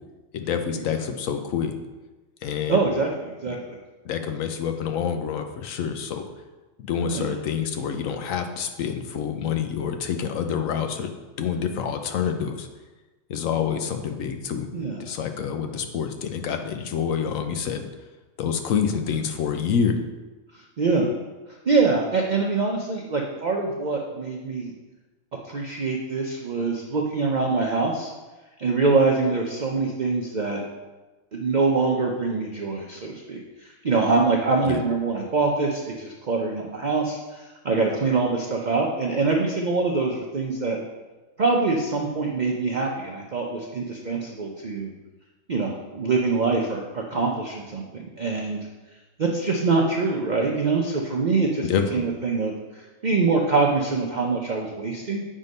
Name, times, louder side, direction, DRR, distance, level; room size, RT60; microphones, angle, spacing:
voice 1, 0.3-1.7 2.4-2.8 4.0-6.2 6.9-11.1 11.4-12.7 13.3-14.7 15.0-17.8 18.4-20.0 34.7-34.8 51.6-52.0, left 7 dB, 75° left, 6 dB, 1.1 m, -27 dB
voice 2, 2.7-3.7 7.0-7.4 14.7-15.0 20.5-21.1 21.7-24.7 25.4-28.1 28.6-30.6 31.3-40.8 41.4-44.9 45.5-48.6 49.2-55.2, right 3 dB, 45° right, 0 dB, 0.6 m, -24 dB
7.8 x 3.7 x 5.3 m, 1.2 s
omnidirectional pair, 1.4 m